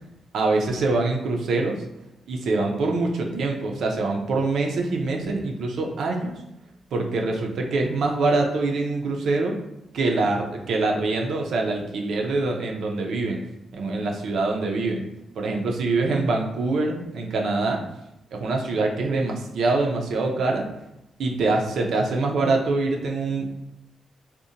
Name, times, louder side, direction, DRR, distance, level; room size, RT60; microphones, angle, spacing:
voice 1, 0.3-1.8 2.3-6.3 6.9-9.5 9.9-13.4 13.7-15.0 15.4-17.8 18.3-20.7 21.2-23.5, right 3 dB, 75° right, 1 dB, 0.4 m, -24 dB
2.7 x 2.1 x 2.5 m, 0.85 s
cardioid pair, 85°, 0 cm